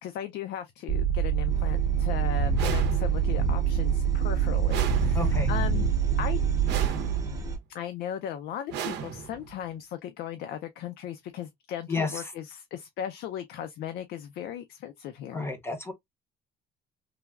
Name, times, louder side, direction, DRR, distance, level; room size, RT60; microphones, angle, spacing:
voice 1, 0.0-5.9 6.2-6.4 7.7-15.5, left 10 dB, 70° left, 0.4 m, -37 dB
sound 1, 0.9-6.9, right 7 dB, 50° right, 0.7 m, -25 dB
sound 2, 1.5-7.6, right 6 dB, 20° right, 0.8 m, -34 dB
sound 3, 2.5-3.4 4.7-5.6 6.6-7.5 8.7-9.6, right 8 dB, 90° right, 0.7 m, -36 dB
voice 2, 5.1-5.5 11.9-12.3 15.3-15.9, left 3 dB, 15° left, 0.6 m, -31 dB
3.3 x 2.2 x 2.2 m
cardioid pair, 140°, 17 cm